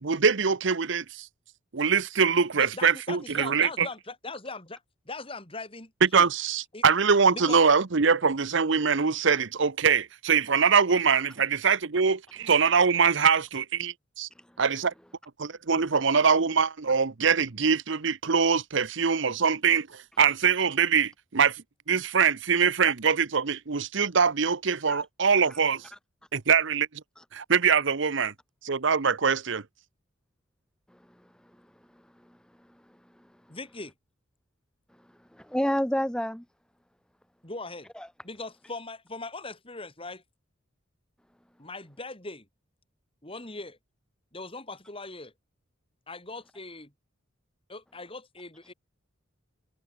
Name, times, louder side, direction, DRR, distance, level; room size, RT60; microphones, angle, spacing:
voice 1, 0.0-1.3 1.7-3.9 6.0-14.3 14.6-14.9 15.4-19.9 20.2-21.6 21.9-25.8 26.3-26.9 27.3-28.3 28.6-29.6, right 6 dB, 65° right, 0.9 m, -23 dB
voice 2, 2.5-6.3 6.7-6.8 7.3-7.6 8.1-8.2 33.5-33.9 37.4-37.9 38.2-40.2 41.6-42.5 43.2-43.8 44.3-45.3 46.1-46.9 47.7-48.7, left 3 dB, 25° left, 5.1 m, -40 dB
voice 3, 35.3-36.4 38.0-38.1, equal, 5° left, 1.1 m, -28 dB
head